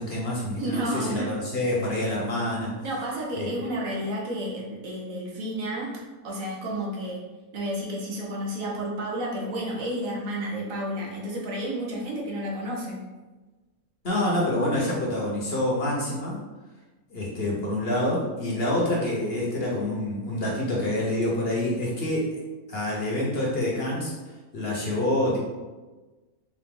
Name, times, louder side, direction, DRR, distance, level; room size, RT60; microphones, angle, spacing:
voice 1, 0.0-2.7 3.3-3.7 14.0-16.3 17.1-22.4 22.7-24.1 24.5-25.4, left 1 dB, 45° left, -4 dB, 1.0 m, -27 dB
voice 2, 0.6-1.3 2.8-7.2 7.5-13.0, right 1 dB, 65° right, -2 dB, 1.2 m, -31 dB
4.8 x 2.6 x 3.7 m, 1.2 s
omnidirectional pair, 1.6 m